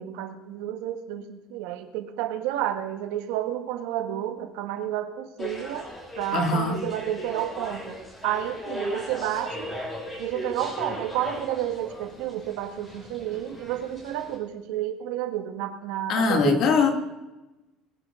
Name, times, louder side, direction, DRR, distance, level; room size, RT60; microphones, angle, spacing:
voice 1, 0.0-9.7 10.2-16.7, right 12 dB, 80° right, 7 dB, 1.6 m, -31 dB
sound 1, 5.4-14.4, left 1 dB, 15° left, 4.5 m, -37 dB
voice 2, 6.3-6.8 16.1-16.9, left 4 dB, 45° left, 5 dB, 2.2 m, -21 dB
22.0 x 10.5 x 3.8 m, 1.0 s
cardioid pair, 170°, 0 cm